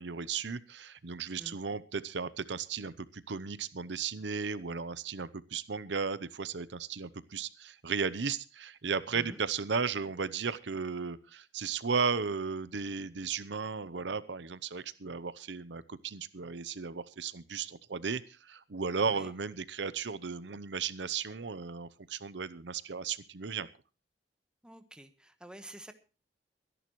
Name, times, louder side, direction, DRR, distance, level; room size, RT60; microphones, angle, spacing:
voice 1, 0.0-23.7, right 5 dB, 80° right, 15 dB, 0.8 m, -35 dB
voice 2, 19.0-19.3 24.6-25.9, right 1 dB, 5° right, 8 dB, 1.3 m, -49 dB
23.5 x 11.0 x 3.1 m, 0.33 s
head